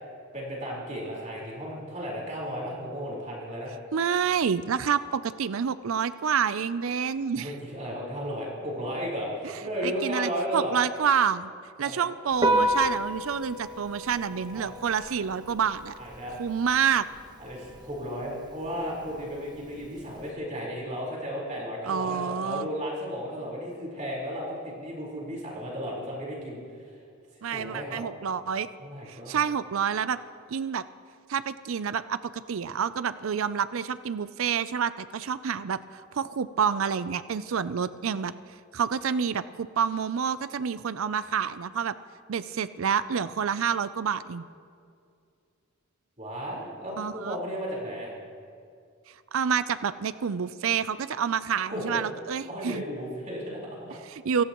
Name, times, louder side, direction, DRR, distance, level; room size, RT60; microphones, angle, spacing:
voice 1, 0.3-3.7 7.3-10.8 11.8-12.1 14.5-14.6 16.0-16.3 17.4-27.0 27.4-28.0 28.8-29.4 46.2-48.1 51.6-52.0 52.5-54.0, equal, 35° right, -4 dB, 4.3 m, -34 dB
voice 2, 3.9-7.5 9.8-11.5 11.8-15.9 16.4-17.0 21.9-22.7 27.4-28.7 29.1-30.2 30.5-30.8 31.3-38.3 38.7-41.9 42.3-44.4 47.0-47.4 49.3-52.8 54.1-54.4, right 7 dB, 70° right, 14 dB, 0.5 m, -28 dB
Piano, 12.3-20.3, equal, 20° right, 1.2 m, -32 dB
26.5 x 18.0 x 3.0 m, 2.4 s
head